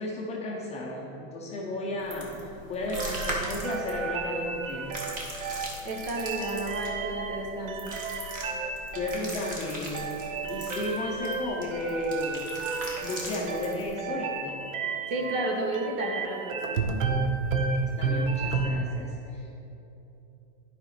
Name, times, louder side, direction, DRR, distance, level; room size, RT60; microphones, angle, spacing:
voice 1, 0.0-5.0 8.9-12.5 13.0-14.6 17.8-19.7, left 2 dB, 15° left, -3 dB, 0.6 m, -34 dB
sound 1, 2.0-13.9, right 1 dB, 20° right, 1.2 m, -40 dB
sound 2, 2.9-18.7, right 4 dB, 80° right, 0.8 m, -32 dB
voice 2, 5.8-8.0 15.1-16.9, right 2 dB, 50° right, 0 dB, 1.5 m, -32 dB
10.0 x 5.1 x 4.1 m, 3.0 s
supercardioid pair, 150°, 39 cm